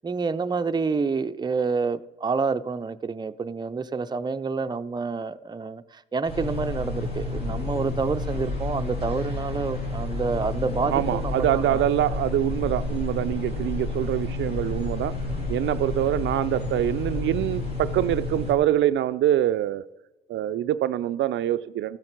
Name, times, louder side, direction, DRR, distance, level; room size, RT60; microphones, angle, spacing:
voice 1, 0.0-11.8 15.9-16.1, right 4 dB, 20° right, 0.6 m, -28 dB
sound 1, 6.3-18.5, left 2 dB, 55° left, 3.5 m, -30 dB
voice 2, 10.9-15.1 15.5-19.8 20.3-22.0, right 12 dB, 70° right, 0.4 m, -24 dB
14.0 x 7.7 x 5.9 m
cardioid pair, 90°, 20 cm